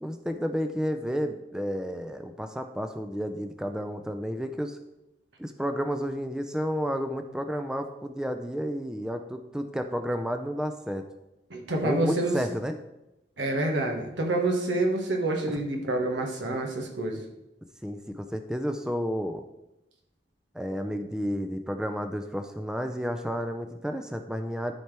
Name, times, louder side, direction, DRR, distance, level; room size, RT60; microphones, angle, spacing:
voice 1, 0.0-4.8 5.4-11.0 11.8-12.8 15.5-15.6 17.8-19.4 20.5-24.7, equal, 5° right, 6 dB, 0.4 m, -31 dB
voice 2, 11.5-12.4 13.4-17.2, right 2 dB, 90° right, 1 dB, 1.5 m, -27 dB
12.5 x 4.4 x 3.4 m, 0.92 s
head